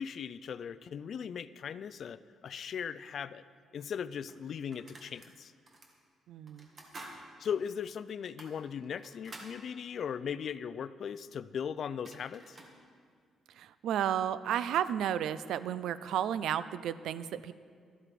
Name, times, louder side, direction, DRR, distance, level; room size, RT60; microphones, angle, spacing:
voice 1, 0.0-3.4 3.7-5.5 7.4-12.6, left 7 dB, 60° left, 16 dB, 0.3 m, -38 dB
sound 1, 3.5-3.6 4.3-5.3 5.7-5.9 6.5-7.2 7.5-7.6 8.2-9.6 11.5-11.6 11.9-12.8, right 2 dB, 40° right, 1.6 m, -50 dB
voice 2, 6.3-6.7 13.5-17.5, right 10 dB, 80° right, 15 dB, 0.3 m, -32 dB
12.5 x 7.6 x 4.8 m, 2.1 s
cardioid pair, 90°, 0 cm